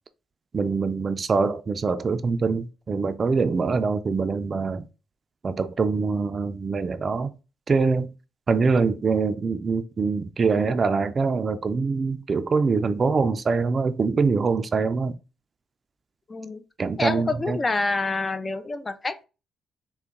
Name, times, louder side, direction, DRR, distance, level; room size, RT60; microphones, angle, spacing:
voice 1, 0.5-4.9 5.4-7.3 7.7-8.1 8.5-15.1 16.8-17.6, right 4 dB, 40° right, 0.4 m, -24 dB
voice 2, 16.3-16.6 17.0-19.2, left 3 dB, 25° left, 0.4 m, -27 dB
3.9 x 2.2 x 3.6 m
cardioid pair, 90°, 0 cm